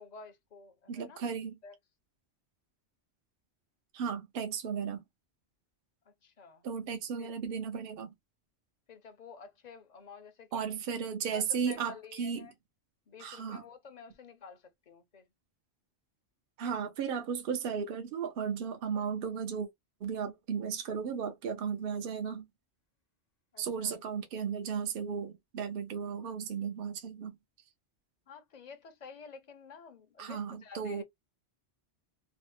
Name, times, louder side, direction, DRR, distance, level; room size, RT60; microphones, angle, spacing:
voice 1, 0.0-1.3 1.6-1.8 6.1-6.6 7.2-7.3 8.9-10.7 11.3-12.5 13.1-15.3 23.5-24.0 28.3-31.0, left 5 dB, 50° left, 0.6 m, -51 dB
voice 2, 0.9-1.6 3.9-5.0 6.6-8.1 10.5-12.5 13.2-13.6 16.6-19.7 20.0-22.5 23.6-27.3 30.2-31.0, right 7 dB, 60° right, 0.8 m, -35 dB
2.9 x 2.0 x 3.1 m
omnidirectional pair, 1.1 m